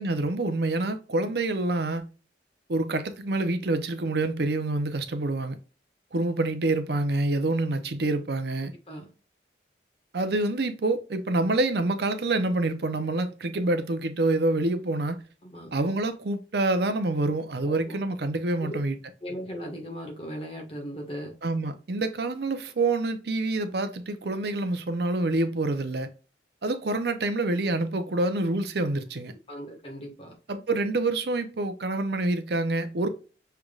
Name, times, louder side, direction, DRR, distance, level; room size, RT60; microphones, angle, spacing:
voice 1, 0.0-2.1 2.7-5.6 6.1-8.7 10.1-15.2 15.7-19.0 21.4-26.1 26.6-29.3 30.5-33.1, right 2 dB, 60° right, 0.6 m, -27 dB
voice 2, 17.6-18.0 18.6-18.8 19.2-21.3 29.5-30.3, equal, 30° left, 1.5 m, -38 dB
6.2 x 3.4 x 2.4 m
head